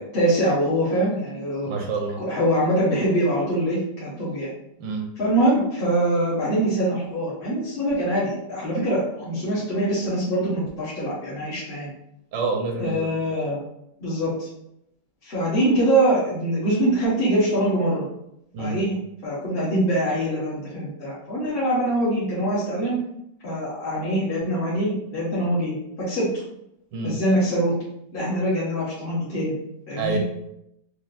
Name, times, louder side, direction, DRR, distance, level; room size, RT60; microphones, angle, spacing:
voice 1, 0.0-1.7 2.2-4.5 5.2-11.9 12.8-13.6 14.0-14.5 15.2-18.1 18.6-18.9 19.2-23.0 23.4-26.3 27.0-27.7 28.1-29.5 29.9-30.2, right 1 dB, 35° left, -10 dB, 1.1 m, -23 dB
voice 2, 1.6-2.2 4.8-5.1 12.3-13.2 18.5-18.8 26.9-27.2 30.0-30.2, right 4 dB, 85° right, 2 dB, 1.4 m, -27 dB
4.9 x 2.8 x 2.4 m, 0.78 s
omnidirectional pair, 2.0 m